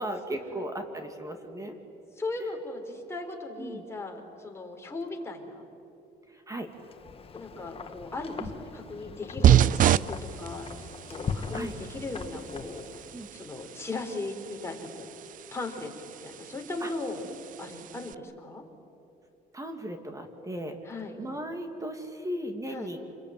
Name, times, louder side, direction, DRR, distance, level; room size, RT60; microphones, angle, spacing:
voice 1, 0.0-1.7 2.4-2.5 3.6-3.8 6.5-6.7 8.4-8.5 11.5-11.7 13.1-13.3 16.8-16.9 19.5-20.8 21.2-23.2, right 1 dB, 20° right, 6 dB, 2.5 m, -36 dB
voice 2, 2.1-5.6 7.3-10.7 11.1-12.9 13.3-15.1 15.5-17.2 17.6-18.6 20.8-21.2 22.7-22.9, left 2 dB, 15° left, 1 dB, 4.3 m, -37 dB
Wind, 6.7-13.2, left 5 dB, 35° left, 1.8 m, -40 dB
sound 1, 9.4-18.1, right 11 dB, 50° right, 0.5 m, -29 dB
28.0 x 22.5 x 9.4 m, 2.8 s
cardioid pair, 110°, 17 cm